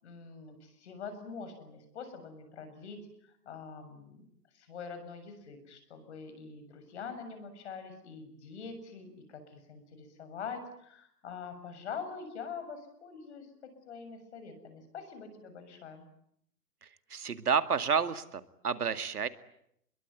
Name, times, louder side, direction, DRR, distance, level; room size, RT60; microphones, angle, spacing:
voice 1, 0.0-16.0, left 5 dB, 45° left, 9 dB, 7.1 m, -44 dB
voice 2, 16.8-19.3, right 6 dB, 80° right, 11 dB, 2.2 m, -30 dB
27.5 x 22.5 x 9.5 m, 0.74 s
hypercardioid pair, 150°, 45 cm